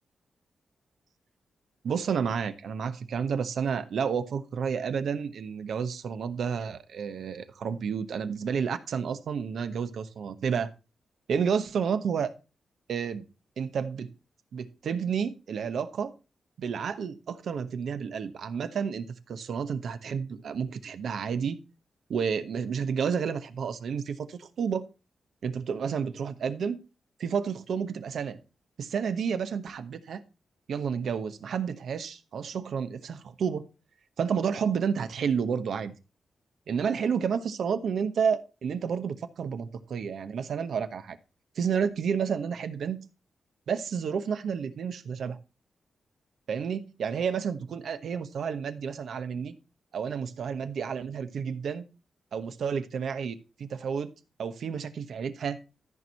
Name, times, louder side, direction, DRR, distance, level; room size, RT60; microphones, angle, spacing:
voice 1, 1.8-10.7 11.3-12.3 12.9-13.2 13.6-14.1 14.5-16.1 16.6-21.6 22.1-24.8 25.4-26.8 27.2-28.4 28.8-30.2 30.7-33.6 34.2-35.9 36.7-41.2 41.6-43.1 43.7-45.4 46.5-49.5 49.9-51.8 52.3-54.1 54.4-55.6, right 6 dB, 80° right, 10 dB, 1.0 m, -30 dB
13.5 x 4.7 x 5.4 m, 0.32 s
cardioid pair, 100°, 0 cm